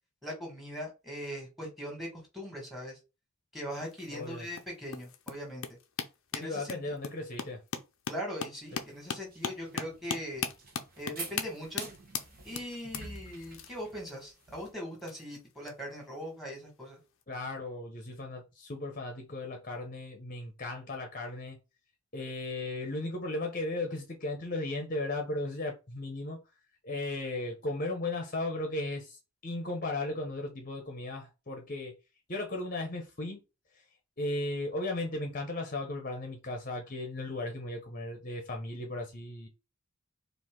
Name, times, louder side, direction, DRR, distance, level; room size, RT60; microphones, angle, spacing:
voice 1, 0.2-3.0 3.5-5.8 6.3-6.9 8.1-10.4 11.0-11.9 12.4-17.0, equal, ahead, 1.8 m, -40 dB
sound 1, 3.7-15.7 16.7-16.9 17.2-17.3, left 6 dB, 60° left, 0.6 m, -39 dB
voice 2, 4.1-4.5 6.4-7.6 17.3-21.6 22.1-26.4 26.8-32.0 32.3-33.4 34.2-39.5, left 2 dB, 35° left, 0.8 m, -36 dB
sound 2, 8.7-14.7, right 3 dB, 40° right, 1.1 m, -48 dB
4.5 x 2.7 x 3.8 m
head